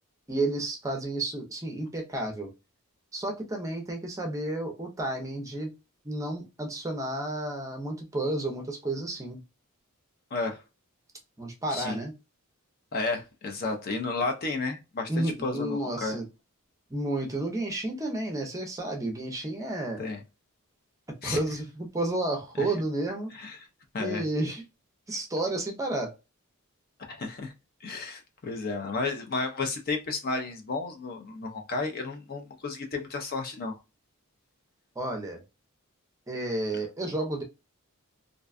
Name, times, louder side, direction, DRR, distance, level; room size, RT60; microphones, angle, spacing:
voice 1, 0.3-2.5 3.1-5.7 6.0-9.4 11.4-12.1 15.1-16.3 16.9-20.0 21.2-23.3 24.0-24.6 25.1-26.1 35.0-35.4 36.3-37.4, right 2 dB, 15° right, 0.5 m, -31 dB
voice 2, 12.9-16.2 20.0-20.2 21.2-21.4 22.6-22.7 23.3-23.6 23.9-24.2 27.1-27.5 27.8-33.7, left 3 dB, 45° left, 0.5 m, -32 dB
2.5 x 2.2 x 2.3 m
head